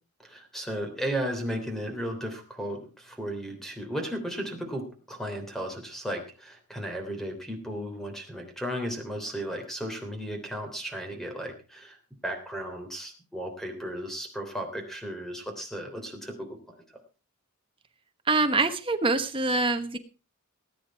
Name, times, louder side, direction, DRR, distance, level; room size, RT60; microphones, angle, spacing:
voice 1, 0.2-12.0 12.2-16.6, equal, ahead, 4 dB, 3.4 m, -35 dB
voice 2, 18.3-20.0, right 3 dB, 25° right, 8 dB, 1.2 m, -25 dB
19.0 x 9.5 x 4.7 m, 0.34 s
head